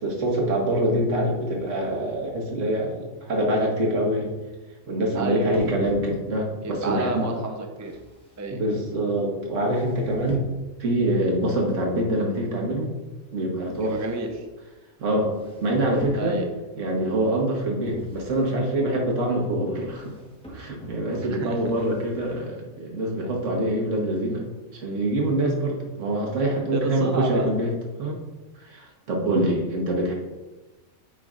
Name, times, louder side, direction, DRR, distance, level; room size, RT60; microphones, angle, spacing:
voice 1, 0.0-4.3 4.9-7.3 8.5-10.5 10.8-13.0 13.3-14.0 15.0-15.3 15.6-16.4 16.7-20.1 20.5-24.4 24.7-27.7 28.0-28.2 28.6-30.1, right 1 dB, 75° right, -1 dB, 1.6 m, -25 dB
voice 2, 5.2-5.7 6.6-7.9 8.4-8.6 13.8-14.4 16.2-16.4 21.3-21.6 26.7-27.5, right 2 dB, 25° right, 3 dB, 0.4 m, -30 dB
sound 1, 5.5-6.6 7.8-8.9 9.6-10.8 11.7-12.1 13.6-14.5 15.2-16.7 17.9-18.6 19.8-22.6, right 1 dB, 5° left, 0.9 m, -44 dB
9.2 x 5.0 x 2.4 m, 1.2 s
omnidirectional pair, 1.3 m